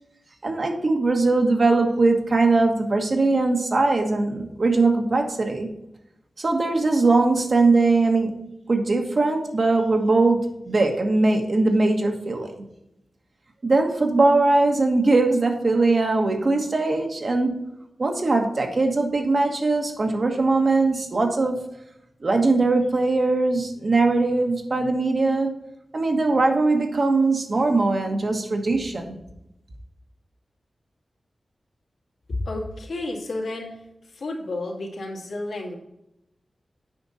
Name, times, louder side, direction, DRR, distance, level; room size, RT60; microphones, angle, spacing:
voice 1, 0.4-5.7 6.4-12.5 13.6-17.6 18.0-21.6 22.2-25.5 25.9-29.1, right 3 dB, 50° right, 3 dB, 1.4 m, -21 dB
voice 2, 32.5-33.7 34.2-35.7, left 2 dB, 85° left, -1 dB, 2.2 m, -31 dB
8.7 x 5.4 x 4.1 m, 0.86 s
wide cardioid pair, 120°, 0 cm